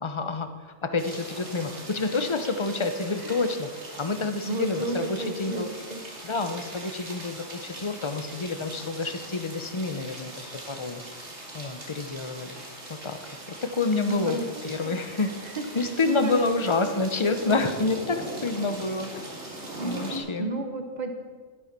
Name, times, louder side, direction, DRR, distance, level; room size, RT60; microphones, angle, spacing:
voice 1, 0.0-3.7 4.0-5.7 6.2-11.0 11.5-12.6 12.9-13.2 13.5-19.3 19.8-20.5, left 3 dB, 25° left, 8 dB, 0.8 m, -28 dB
sound 1, 1.0-20.2, right 1 dB, 65° right, 2.6 m, -41 dB
voice 2, 4.5-5.6 5.9-6.0 14.0-14.4 14.8-14.9 15.6-15.7 16.0-16.4 17.2-17.4 19.8-21.1, right 2 dB, 35° right, 5 dB, 1.4 m, -32 dB
11.5 x 11.0 x 6.0 m, 1.5 s
omnidirectional pair, 1.3 m